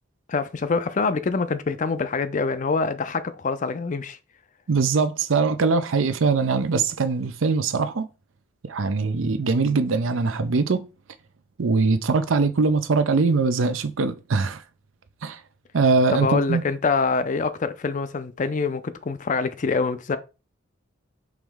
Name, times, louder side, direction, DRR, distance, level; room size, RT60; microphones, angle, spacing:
voice 1, 0.3-4.2 16.1-20.2, left 4 dB, 40° left, 0.4 m, -25 dB
voice 2, 4.7-8.1 8.6-10.9 11.6-14.6 15.2-15.4 15.7-16.6, right 4 dB, 80° right, 0.6 m, -22 dB
4.8 x 3.1 x 3.6 m
head